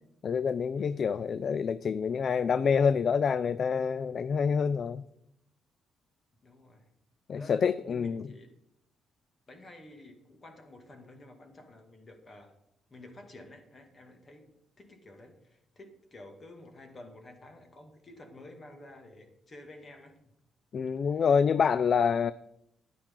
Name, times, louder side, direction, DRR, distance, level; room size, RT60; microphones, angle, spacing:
voice 1, 0.2-5.1 7.3-8.2 20.7-22.3, left 6 dB, 50° left, 16 dB, 0.4 m, -27 dB
voice 2, 0.8-1.1 6.4-6.9 7.3-8.5 9.5-12.5 12.9-14.5 14.8-20.2 21.0-21.4, left 1 dB, 35° left, 4 dB, 2.2 m, -51 dB
10.5 x 9.6 x 3.8 m, 0.78 s
cardioid pair, 90°, 0 cm